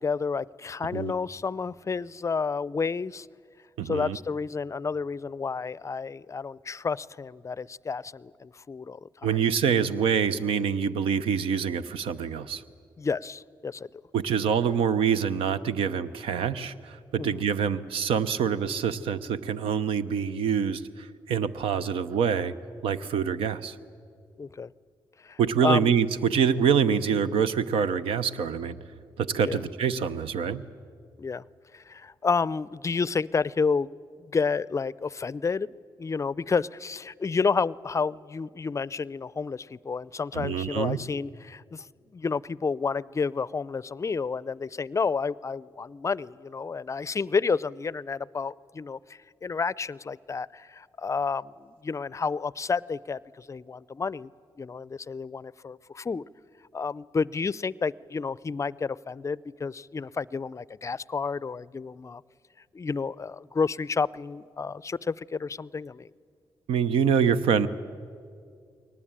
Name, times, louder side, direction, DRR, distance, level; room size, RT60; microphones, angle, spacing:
voice 1, 0.0-3.3 3.8-9.1 13.0-13.9 17.2-17.4 24.4-24.7 25.2-25.9 29.5-29.6 31.2-31.4 31.7-33.9 34.2-35.7 36.0-41.9 42.1-54.3 54.6-56.3 56.7-62.2 62.7-66.1, left 5 dB, 35° left, 22 dB, 0.5 m, -30 dB
voice 2, 3.8-4.2 9.2-12.6 14.1-22.5 22.8-23.8 25.4-28.8 29.2-30.6 40.3-41.0 66.7-67.7, right 7 dB, 80° right, 13 dB, 0.8 m, -25 dB
22.0 x 19.0 x 8.9 m, 2.3 s
supercardioid pair, 60°, 9 cm